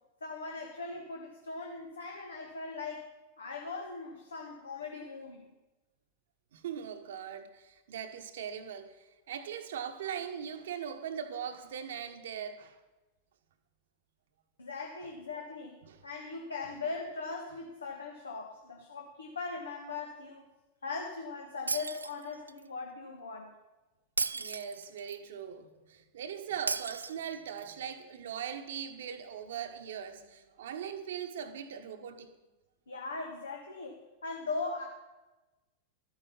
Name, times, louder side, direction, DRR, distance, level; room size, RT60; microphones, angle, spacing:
voice 1, 0.2-3.1 3.4-5.5 14.6-20.4 20.8-23.5 32.9-34.9, left 4 dB, 75° left, 1.3 m, -40 dB
voice 2, 6.5-12.8 15.8-16.0 24.3-32.3, right 8 dB, 60° right, 1.1 m, -40 dB
Shatter, 21.7-22.6 24.2-25.2 26.7-27.7, right 4 dB, 75° right, 0.3 m, -35 dB
13.0 x 9.7 x 5.6 m
figure-of-eight pair, 90°, 0 cm